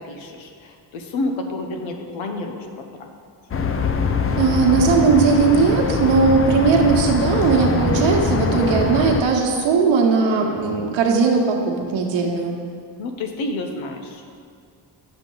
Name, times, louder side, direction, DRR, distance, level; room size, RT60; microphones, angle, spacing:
voice 1, 0.0-2.7 3.0-3.1 10.2-10.9 13.0-14.2, left 2 dB, 90° left, 4 dB, 1.0 m, -30 dB
sound 1, 3.5-9.2, left 5 dB, 30° left, 0.6 m, -22 dB
voice 2, 4.4-11.6 11.9-12.6, right 5 dB, 85° right, 0 dB, 1.2 m, -18 dB
8.8 x 7.0 x 3.9 m, 2.2 s
cardioid pair, 90°, 46 cm